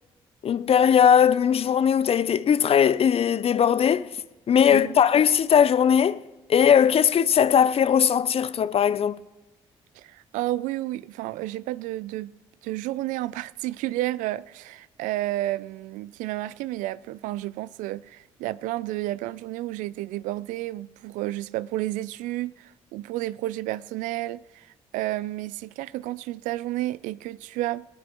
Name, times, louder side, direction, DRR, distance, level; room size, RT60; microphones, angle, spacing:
voice 1, 0.4-4.1 4.5-6.2 6.5-9.2, left 8 dB, 45° left, 0.6 m, -19 dB
voice 2, 10.0-12.3 12.6-27.9, right 16 dB, 75° right, 0.4 m, -31 dB
19.0 x 18.5 x 3.0 m
hypercardioid pair, 55°, 13 cm